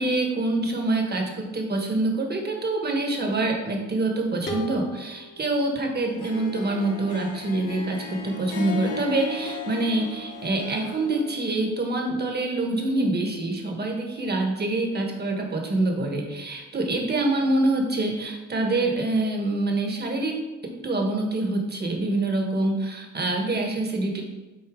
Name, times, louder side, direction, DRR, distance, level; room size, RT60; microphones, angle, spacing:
voice 1, 0.0-20.4 20.6-24.2, right 2 dB, 35° right, 2 dB, 1.5 m, -26 dB
sound 1, 4.5-7.3, right 1 dB, 40° left, 1.4 m, -39 dB
Harp, 6.0-11.4, left 3 dB, 85° left, 1.4 m, -36 dB
8.3 x 4.2 x 3.7 m, 1.1 s
cardioid pair, 90°, 30 cm